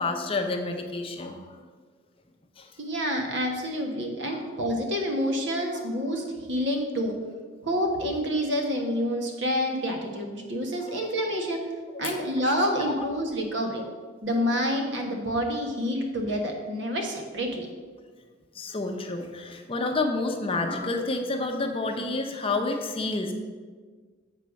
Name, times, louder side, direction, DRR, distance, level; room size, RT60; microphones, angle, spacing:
voice 1, 0.0-1.6 2.6-2.7 4.3-4.5 5.7-5.9 10.8-11.0 12.0-12.2 12.8-13.1 18.5-23.3, left 3 dB, 30° left, 4 dB, 0.7 m, -29 dB
voice 2, 2.8-7.1 7.6-11.6 12.0-13.8 14.2-17.7, equal, 65° right, 2 dB, 1.4 m, -28 dB
7.7 x 4.4 x 6.2 m, 1.5 s
head